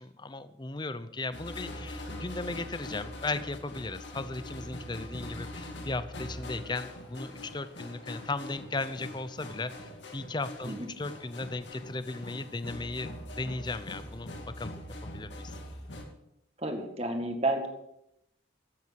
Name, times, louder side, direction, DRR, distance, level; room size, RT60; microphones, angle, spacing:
voice 1, 0.0-15.6, left 3 dB, 25° left, 13 dB, 0.6 m, -36 dB
sound 1, 1.3-16.0, left 1 dB, 75° left, 2.7 m, -43 dB
voice 2, 16.6-17.7, right 2 dB, 35° right, 4 dB, 2.0 m, -31 dB
13.5 x 9.1 x 7.5 m, 0.83 s
head